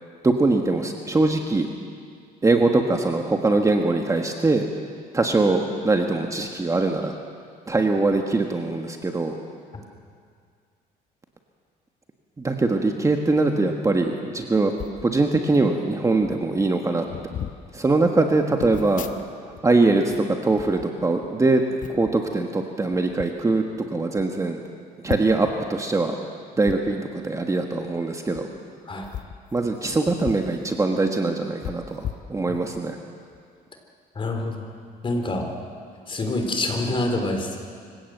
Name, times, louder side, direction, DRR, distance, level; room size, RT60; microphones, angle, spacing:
voice 1, 0.2-1.7 2.4-4.6 5.1-7.1 7.7-9.3 12.4-14.7 15.0-17.0 17.7-19.1 19.6-20.1 20.4-21.6 21.9-23.6 23.9-24.6 25.0-26.2 26.6-28.5 29.5-32.0 32.3-33.0, right 3 dB, 20° right, 3 dB, 1.5 m, -22 dB
sound 1, 14.7-15.0 15.9-16.0 16.2-16.5 17.0-17.6 18.6-19.6 19.9-21.3 21.8-22.1 22.9-23.3 23.8-23.9 24.2-24.3 25.0-25.5 26.6-26.8 28.2-28.4 29.0-30.5 30.8-30.9 31.6-32.8 33.3-33.5, left 10 dB, 50° left, 1.1 m, -36 dB
voice 2, 34.2-34.7 35.0-35.5 36.1-37.6, left 2 dB, 30° left, 4 dB, 3.8 m, -26 dB
25.0 x 17.0 x 8.0 m, 2.2 s
cardioid pair, 110°, 17 cm